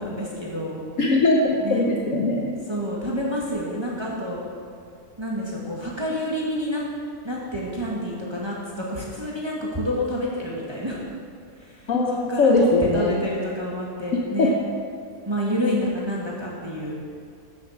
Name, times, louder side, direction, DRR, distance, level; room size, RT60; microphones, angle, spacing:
voice 1, 0.0-0.8 1.6-1.8 2.7-4.4 5.2-6.9 7.2-11.0 11.6-11.9 12.3-12.7 12.9-14.5 15.3-16.9, equal, 15° right, -4 dB, 2.0 m, -28 dB
voice 2, 1.0-2.5 11.9-13.2 14.1-14.5, left 2 dB, 60° left, 0 dB, 1.4 m, -20 dB
14.0 x 8.0 x 7.4 m, 2.3 s
omnidirectional pair, 1.6 m